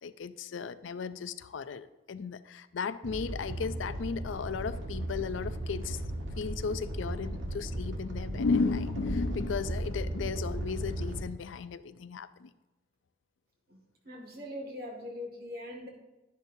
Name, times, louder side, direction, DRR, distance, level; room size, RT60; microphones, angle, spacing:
voice 1, 0.0-6.0 6.4-12.5, left 5 dB, 85° left, 13 dB, 0.4 m, -35 dB
Animal, 3.0-11.2, right 1 dB, 85° right, 1.4 m, -36 dB
voice 2, 14.1-15.9, left 1 dB, 50° right, 1 dB, 2.0 m, -41 dB
11.0 x 10.5 x 2.7 m, 1.1 s
head